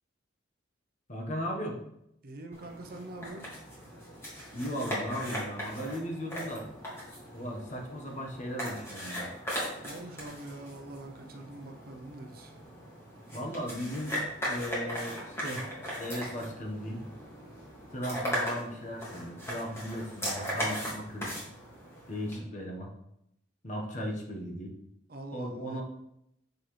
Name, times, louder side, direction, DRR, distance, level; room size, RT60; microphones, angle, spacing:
voice 1, 1.1-1.8 4.5-6.7 7.3-9.3 13.3-14.2 14.5-15.6 15.9-17.0 17.9-21.3 22.1-22.9 23.6-24.7 25.3-25.8, equal, 40° left, 0 dB, 1.4 m, -36 dB
voice 2, 2.2-3.5 9.8-12.5 25.1-25.8, right 2 dB, 50° right, 4 dB, 0.7 m, -44 dB
sound 1, 2.5-22.4, equal, 15° left, 2.4 m, -38 dB
6.9 x 6.3 x 3.3 m, 0.79 s
head